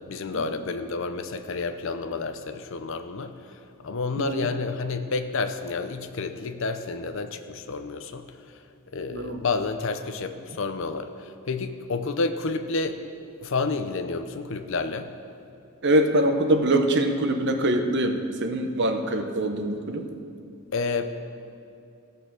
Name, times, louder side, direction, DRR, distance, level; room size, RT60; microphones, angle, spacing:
voice 1, 0.0-8.2 8.9-13.0 13.4-15.1 20.7-21.1, left 4 dB, 60° left, 9 dB, 0.6 m, -30 dB
voice 2, 4.2-4.5 9.1-9.4 15.8-20.0, right 1 dB, 50° right, 6 dB, 0.8 m, -24 dB
15.0 x 6.7 x 6.1 m, 2.5 s
head